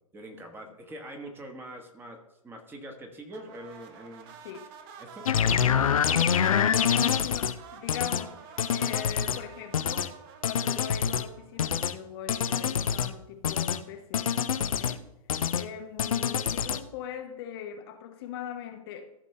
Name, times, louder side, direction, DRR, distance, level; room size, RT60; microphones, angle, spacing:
voice 1, 0.1-2.2 2.4-4.4 5.0-5.6, right 1 dB, 10° right, 3 dB, 1.3 m, -44 dB
sound 1, 3.3-11.8, right 7 dB, 40° right, 1.0 m, -49 dB
sound 2, 5.3-7.5 7.9-8.2 8.6-9.4 9.7-10.1 10.4-11.3 11.6-11.9 12.3-13.1 13.4-13.8 14.1-15.0 15.3-15.7 16.0-16.8, left 8 dB, 70° left, 0.6 m, -26 dB
voice 2, 6.2-8.5 8.7-10.1 10.4-15.1 15.5-19.1, left 9 dB, 45° left, 6 dB, 0.9 m, -41 dB
14.5 x 5.2 x 3.3 m, 0.88 s
figure-of-eight pair, 115°, 18 cm